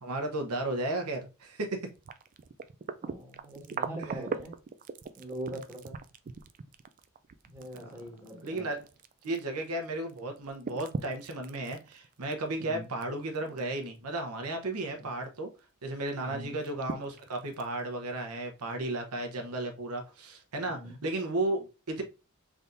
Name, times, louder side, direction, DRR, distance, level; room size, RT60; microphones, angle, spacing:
voice 1, 0.0-1.9 4.0-4.2 7.8-7.9 8.4-8.9 9.2-15.5 15.8-22.0, right 2 dB, 85° right, 0.9 m, -34 dB
sound 1, 1.9-9.8 10.1-13.0 13.3-13.8 14.2-14.3 15.6-15.7 16.1-16.2 16.6-17.8 18.6-18.7, right 5 dB, 35° right, 0.3 m, -40 dB
voice 2, 3.0-4.6 5.2-5.9 7.4-8.7 12.6-12.9 14.9-15.1 16.2-16.6 20.7-21.0, right 1 dB, 10° right, 1.3 m, -42 dB
4.0 x 3.5 x 2.6 m
head